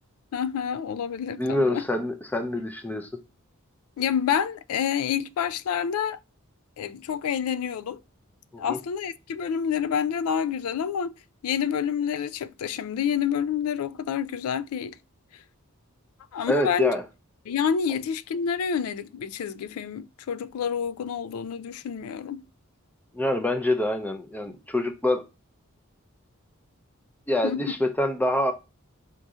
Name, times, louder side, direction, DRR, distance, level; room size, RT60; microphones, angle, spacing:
voice 1, 0.3-1.8 4.0-6.2 6.8-8.0 8.6-11.1 11.4-15.0 15.3-15.4 16.3-16.9 17.5-22.4 27.4-27.6, left 7 dB, 80° left, 0.3 m, -28 dB
voice 2, 1.3-3.1 8.5-8.8 16.5-17.0 23.1-25.2 27.3-28.5, left 1 dB, 10° left, 0.5 m, -26 dB
3.7 x 2.7 x 4.7 m
head